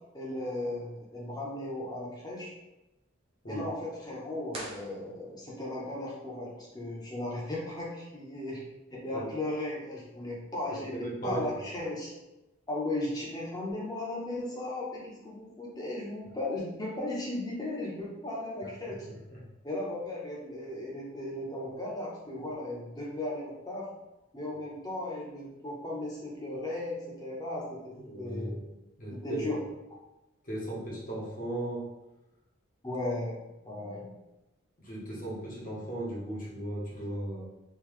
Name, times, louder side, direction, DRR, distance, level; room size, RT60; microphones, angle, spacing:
voice 1, 0.1-2.5 3.5-8.6 8.9-12.1 12.7-19.1 19.6-23.9 24.3-28.6 29.1-29.6 32.8-34.1, left 1 dB, 20° left, -4 dB, 0.8 m, -36 dB
sound 1, 4.5-5.7, right 1 dB, 25° right, 0.6 m, -44 dB
voice 2, 10.7-11.5 18.9-19.0 19.3-19.4 28.0-28.7 29.0-29.6 30.5-31.9 34.8-37.4, right 1 dB, 40° left, -4 dB, 1.0 m, -37 dB
3.7 x 2.7 x 3.2 m, 0.97 s
head